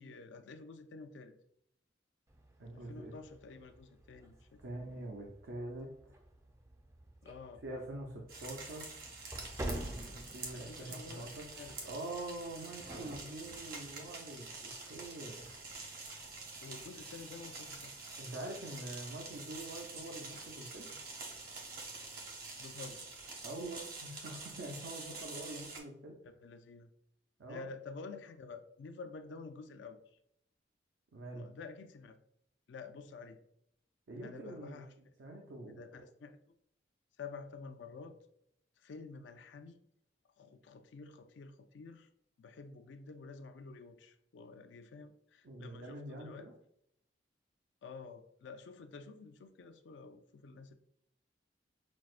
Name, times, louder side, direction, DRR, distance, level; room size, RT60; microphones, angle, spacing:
voice 1, 0.0-1.3 2.7-4.8 7.2-7.6 10.5-11.9 16.6-18.0 22.6-23.1 26.2-26.9 27.5-30.0 31.3-32.2 32.7-33.4 34.2-34.9 35.6-36.4 37.2-38.1 38.8-39.8 40.4-42.1 42.4-46.5 47.8-50.7, left 4 dB, 75° left, 8 dB, 0.4 m, -50 dB
sound 1, 2.3-13.2, right 1 dB, 15° right, 0.4 m, -49 dB
voice 2, 2.6-3.1 4.6-6.2 7.6-8.9 10.1-11.5 11.8-15.5 18.2-21.0 23.4-26.2 27.4-27.7 31.1-31.4 34.1-34.8 35.2-35.8 45.4-46.5, right 1 dB, 80° right, 0 dB, 0.5 m, -45 dB
sound 2, 8.3-25.8, right 3 dB, 50° right, 0.8 m, -47 dB
5.9 x 2.0 x 2.4 m, 0.73 s
head